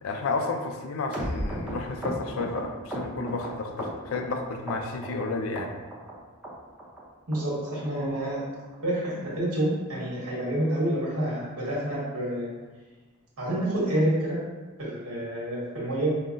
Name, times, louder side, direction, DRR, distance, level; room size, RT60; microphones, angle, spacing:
voice 1, 0.0-5.7, left 3 dB, 65° left, 4 dB, 0.4 m, -31 dB
sound 1, 1.1-4.4 4.7-5.3 5.6-6.1 6.4-6.5 6.8-7.0 7.3-7.4 7.7-7.9 8.2-8.3 8.6-8.8 9.1-9.2 9.4-9.6 10.0-10.1 10.3-10.5 10.9-11.0, right 1 dB, 5° right, 0.6 m, -35 dB
voice 2, 7.3-8.4 8.8-12.5 13.4-14.4 14.8-16.1, right 1 dB, 70° right, -6 dB, 1.4 m, -28 dB
5.5 x 2.1 x 2.5 m, 1.3 s
head